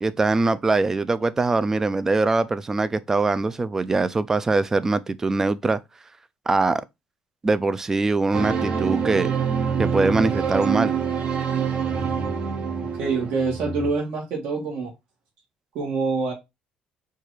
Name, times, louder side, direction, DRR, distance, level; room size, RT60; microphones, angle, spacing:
voice 1, 0.0-5.8 6.5-6.8 7.4-9.3 9.8-10.9, right 3 dB, 15° right, 0.3 m, -22 dB
sound 1, 8.3-13.9, right 6 dB, 40° right, 0.7 m, -25 dB
voice 2, 13.0-14.9 15.7-16.3, right 4 dB, 65° right, 1.4 m, -26 dB
4.5 x 2.5 x 4.7 m
cardioid pair, 155°, 3 cm